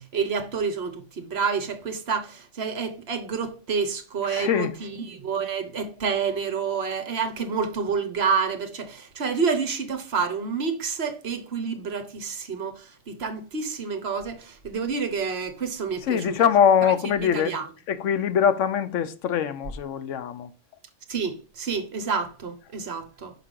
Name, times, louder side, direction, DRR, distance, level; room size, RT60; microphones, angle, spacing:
voice 1, 0.0-16.3 16.8-16.9 17.3-17.6 21.1-23.3, right 5 dB, 60° right, 1.2 m, -28 dB
voice 2, 4.2-4.8 16.0-17.6 17.9-20.5, left 8 dB, 85° left, 1.0 m, -23 dB
6.0 x 5.6 x 3.6 m
omnidirectional pair, 1.3 m